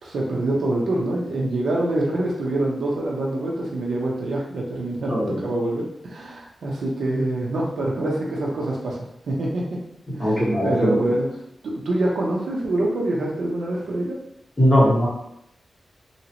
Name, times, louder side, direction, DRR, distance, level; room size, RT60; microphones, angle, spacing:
voice 1, 0.0-9.8 10.2-11.3 11.6-14.2, right 1 dB, 90° right, -3 dB, 0.6 m, -25 dB
voice 2, 5.1-5.5 10.2-11.0 14.6-15.1, equal, 15° left, -9 dB, 1.5 m, -19 dB
2.9 x 2.8 x 2.8 m, 0.78 s
wide cardioid pair, 130°, 0 cm